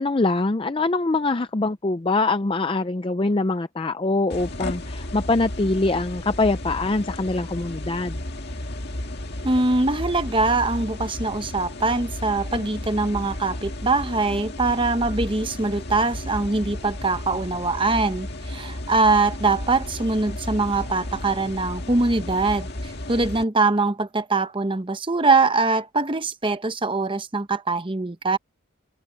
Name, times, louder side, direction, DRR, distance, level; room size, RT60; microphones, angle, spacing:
voice 1, 0.0-8.2, left 3 dB, 25° left, 0.5 m, -23 dB
sound 1, 4.3-23.4, left 1 dB, 50° left, 1.9 m, -33 dB
voice 2, 9.4-28.4, right 3 dB, 25° right, 0.9 m, -23 dB
head